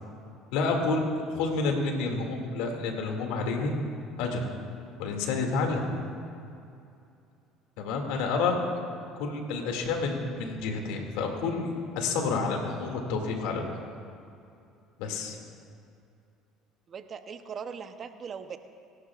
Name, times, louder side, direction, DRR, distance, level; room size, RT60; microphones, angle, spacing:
voice 1, 0.5-1.0 1.3-3.7 4.2-4.4 5.0-5.8 7.8-8.6 9.2-13.8 15.0-15.4, left 4 dB, 75° left, 2 dB, 2.4 m, -29 dB
voice 2, 16.9-18.6, right 6 dB, 45° right, 9 dB, 0.8 m, -39 dB
28.5 x 11.5 x 2.5 m, 2.5 s
hypercardioid pair, 75°, 0 cm